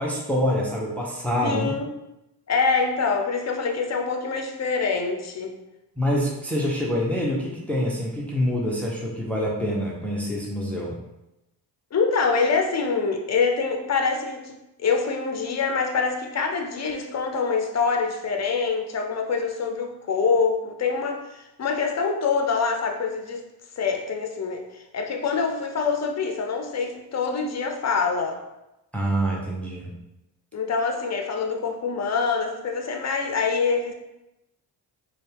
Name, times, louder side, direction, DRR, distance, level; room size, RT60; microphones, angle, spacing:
voice 1, 0.0-1.7 6.0-11.0 28.9-29.9, equal, 5° left, -3 dB, 0.8 m, -26 dB
voice 2, 1.4-1.9 2.5-5.5 11.9-23.5 23.8-28.4 30.5-33.9, left 5 dB, 40° left, 4 dB, 0.7 m, -25 dB
4.2 x 2.4 x 3.4 m, 0.94 s
cardioid pair, 70°, 42 cm